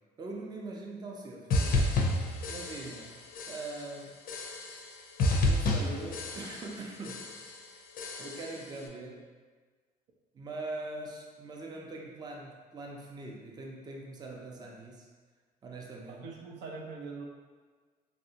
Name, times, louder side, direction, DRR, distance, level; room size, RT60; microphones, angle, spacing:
voice 1, 0.2-2.0 2.5-3.2 3.5-4.2 5.4-7.3 8.2-9.3 10.3-15.1 15.6-16.3, right 2 dB, 25° right, -1 dB, 0.5 m, -42 dB
sound 1, 1.5-3.1 3.4-3.9 4.3-4.9 5.2-6.8 7.0-7.6 8.0-8.6, left 2 dB, 60° left, 0.5 m, -30 dB
voice 2, 16.1-17.3, right 4 dB, 85° right, -1 dB, 0.6 m, -43 dB
3.1 x 2.6 x 2.7 m, 1.4 s
cardioid pair, 110°, 17 cm